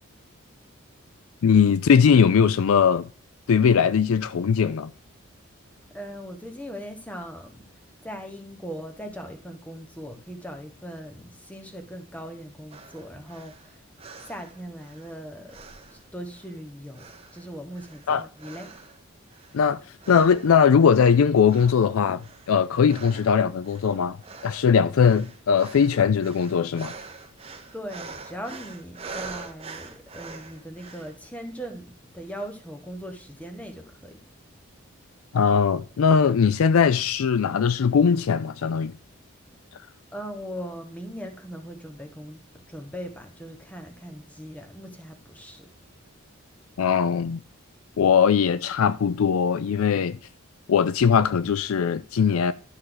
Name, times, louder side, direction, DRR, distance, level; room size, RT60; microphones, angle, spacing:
voice 1, 1.4-3.1 3.5-4.9 18.1-18.3 19.5-19.8 20.1-24.2 24.4-26.9 35.3-38.9 46.8-47.4 48.0-50.2 50.7-52.5, left 6 dB, 80° left, 0.4 m, -20 dB
voice 2, 5.9-7.6 8.0-13.8 14.3-15.6 15.9-17.1 17.3-18.7 27.7-34.2 40.1-42.4 42.7-45.7, equal, 5° left, 1.1 m, -39 dB
sound 1, 12.7-15.2 15.5-16.6 16.9-19.0 19.3-19.7 20.0-21.2 21.5-31.2, right 4 dB, 25° right, 0.9 m, -44 dB
12.0 x 6.3 x 3.9 m
head